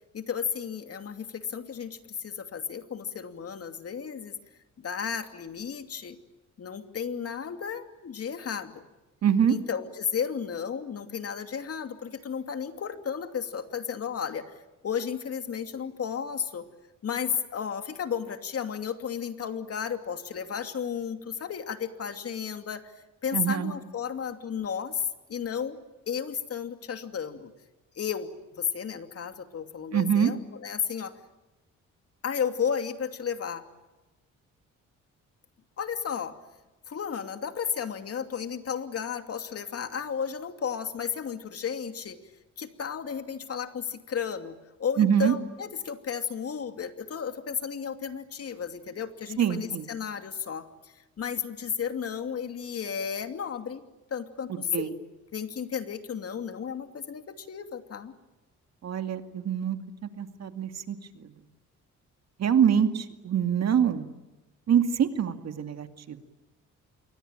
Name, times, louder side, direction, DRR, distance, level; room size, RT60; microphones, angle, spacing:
voice 1, 0.1-4.3 4.8-6.2 6.6-8.8 9.5-14.5 14.8-16.7 17.0-25.8 26.1-27.5 27.9-31.2 32.2-33.7 35.8-36.4 36.9-42.2 42.6-53.8 54.1-55.0 55.3-58.1, left 7 dB, 50° left, 7 dB, 2.7 m, -33 dB
voice 2, 9.2-9.5 23.3-23.7 29.9-30.3 45.0-45.3 49.4-49.9 54.7-54.9 58.8-59.8 60.0-61.3 62.4-64.1 64.7-66.2, right 8 dB, 60° right, 7 dB, 2.4 m, -25 dB
27.5 x 24.0 x 9.1 m, 1.1 s
cardioid pair, 90°, 30 cm